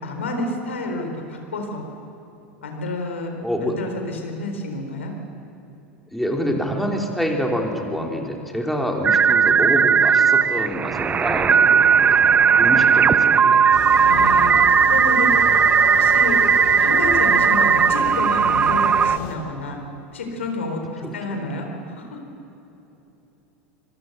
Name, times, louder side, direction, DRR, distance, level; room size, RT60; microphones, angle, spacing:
voice 1, 0.0-1.8 2.6-3.3 3.6-5.1 14.0-14.5 14.9-15.3 15.9-16.4 16.7-19.8 20.1-22.2, left 2 dB, 75° left, 3 dB, 4.0 m, -29 dB
voice 2, 3.4-3.8 6.1-12.2 12.5-13.6 21.0-21.4, equal, ahead, 0 dB, 3.6 m, -26 dB
sound 1, 9.0-19.2, right 6 dB, 20° right, 0.5 m, -16 dB
sound 2, 13.7-19.4, left 5 dB, 50° left, 3.0 m, -33 dB
26.0 x 23.0 x 6.8 m, 3.0 s
figure-of-eight pair, 85°, 7 cm